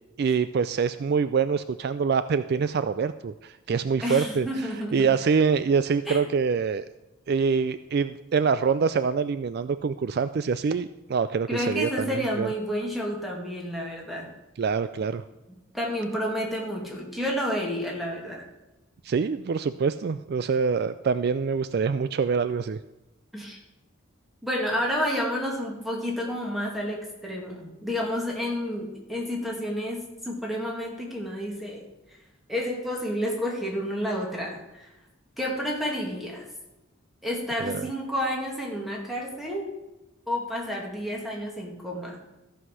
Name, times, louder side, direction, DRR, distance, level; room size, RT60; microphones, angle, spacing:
voice 1, 0.2-4.5 4.9-6.8 7.3-12.5 14.6-15.2 19.0-22.8 37.6-37.9, right 5 dB, 50° right, 13 dB, 0.3 m, -25 dB
voice 2, 4.0-5.1 6.1-6.2 11.5-14.3 15.7-18.4 23.3-23.6 24.4-31.8 32.5-34.9 35.4-36.5 37.2-39.7 40.3-42.2, equal, ahead, -2 dB, 2.1 m, -30 dB
14.0 x 5.7 x 6.3 m, 0.99 s
head